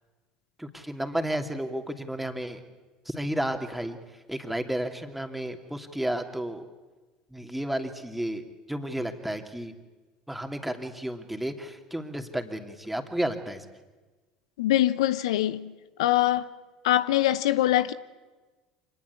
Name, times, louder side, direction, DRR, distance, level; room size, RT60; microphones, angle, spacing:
voice 1, 0.6-2.6 3.0-4.0 4.3-6.7 7.3-9.7 10.3-13.6, right 1 dB, 5° right, 2.9 m, -32 dB
voice 2, 14.6-15.7 16.0-16.5 16.8-17.9, left 14 dB, 75° left, 0.8 m, -23 dB
26.0 x 20.0 x 8.5 m
hypercardioid pair, 70°, 3 cm